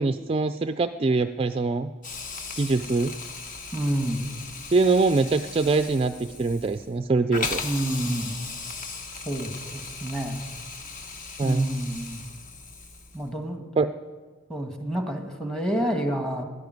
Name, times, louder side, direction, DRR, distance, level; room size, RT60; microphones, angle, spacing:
voice 1, 0.0-1.9 2.6-3.1 4.7-7.6 11.4-11.7 13.8-13.9, right 3 dB, 30° right, 9 dB, 0.3 m, -23 dB
Hiss, 2.0-13.3, left 4 dB, 40° left, 1.2 m, -37 dB
voice 2, 3.7-4.2 7.6-8.4 9.2-10.5 11.4-12.3 13.1-13.6 14.5-16.4, right 1 dB, 5° left, 4 dB, 1.6 m, -28 dB
12.0 x 11.0 x 9.4 m, 1.4 s
head